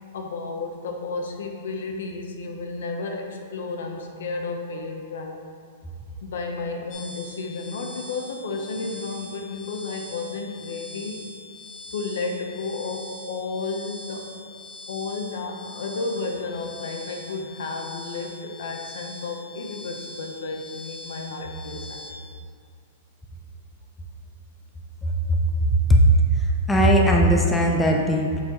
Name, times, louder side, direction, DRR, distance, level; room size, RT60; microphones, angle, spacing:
voice 1, 0.1-5.4 6.2-11.2 11.9-14.3 14.9-22.2, left 3 dB, 70° left, 2 dB, 1.0 m, -32 dB
sound 1, 6.9-22.1, left 2 dB, 30° left, 1.4 m, -42 dB
voice 2, 25.0-26.0 26.3-28.4, right 1 dB, 5° left, 0 dB, 0.4 m, -19 dB
7.2 x 6.1 x 3.1 m, 2.1 s
supercardioid pair, 175°, 0 cm